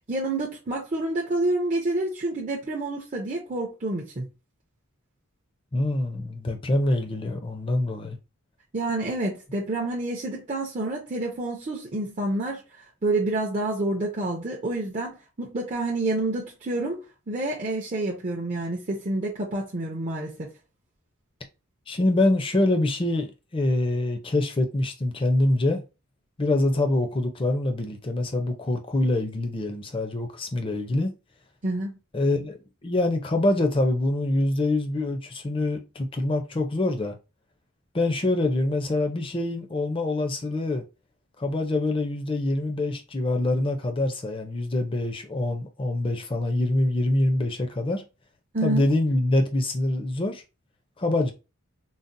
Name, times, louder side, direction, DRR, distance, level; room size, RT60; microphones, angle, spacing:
voice 1, 0.1-4.3 8.7-12.6 13.0-20.5 31.6-32.0 48.5-48.8, right 2 dB, 35° right, 0.5 m, -28 dB
voice 2, 5.7-8.2 21.9-25.8 26.4-31.1 32.1-37.2 37.9-40.8 41.4-48.0 48.6-50.4 51.0-51.3, left 2 dB, 25° left, 0.5 m, -25 dB
3.9 x 2.0 x 2.5 m
head